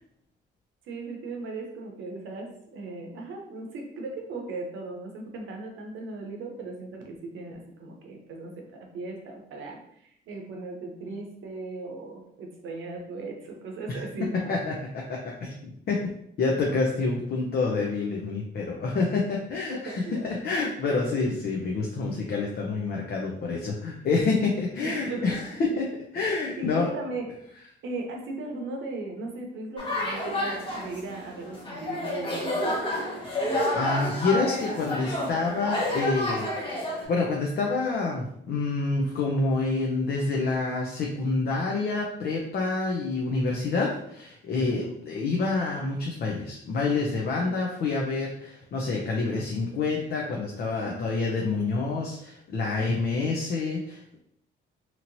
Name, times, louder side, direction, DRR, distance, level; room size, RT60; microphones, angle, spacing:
voice 1, 0.8-14.5 19.7-20.3 20.9-21.1 24.8-25.4 26.6-27.3 27.8-33.1 35.7-35.8 44.6-44.9 47.4-47.6 50.8-51.2 52.6-52.9, right 2 dB, 80° right, 1 dB, 0.7 m, -37 dB
voice 2, 14.5-16.0 16.4-25.4 25.8-25.9 26.1-26.9 33.4-36.5 36.8-54.2, left 3 dB, 55° left, -1 dB, 0.6 m, -28 dB
sound 1, 29.8-37.1, left 1 dB, 25° left, 1.1 m, -30 dB
2.9 x 2.8 x 2.6 m, 0.74 s
cardioid pair, 90°, 20 cm